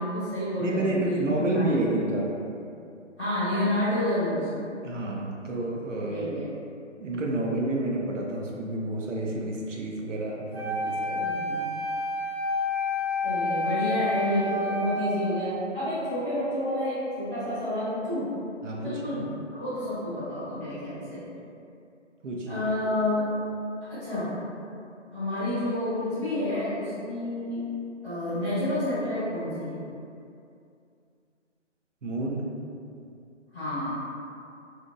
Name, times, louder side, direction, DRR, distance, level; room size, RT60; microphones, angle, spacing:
voice 1, 0.0-1.2 1.5-1.8 3.2-4.6 6.1-6.5 11.2-11.6 13.2-18.3 18.8-19.3 19.5-21.2 22.5-23.3 23.8-24.3 25.1-27.7 28.0-29.8 33.5-34.0, left 1 dB, 10° left, -18 dB, 0.6 m, -29 dB
voice 2, 0.6-2.3 4.8-6.3 7.0-11.2 18.6-19.2 22.2-22.6 32.0-32.5, right 2 dB, 80° right, -2 dB, 0.6 m, -29 dB
Wind instrument woodwind instrument, 10.5-15.6, left 2 dB, 55° right, 0.8 m, -29 dB
2.7 x 2.1 x 2.2 m, 2.5 s
figure-of-eight pair, 150°, 37 cm